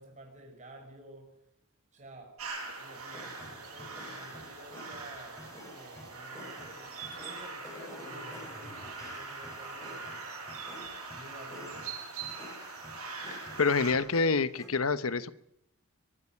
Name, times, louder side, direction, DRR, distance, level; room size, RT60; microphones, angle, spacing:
voice 1, 0.0-1.4 1.9-2.4 2.7-10.2 11.1-12.0, right 1 dB, 35° right, 5.6 m, -51 dB
sound 1, 2.4-13.9, right 4 dB, 80° right, 7.4 m, -42 dB
sound 2, 2.9-14.7, left 1 dB, 15° left, 7.5 m, -50 dB
voice 2, 13.6-15.3, left 4 dB, 70° left, 1.0 m, -27 dB
23.0 x 13.0 x 9.9 m
head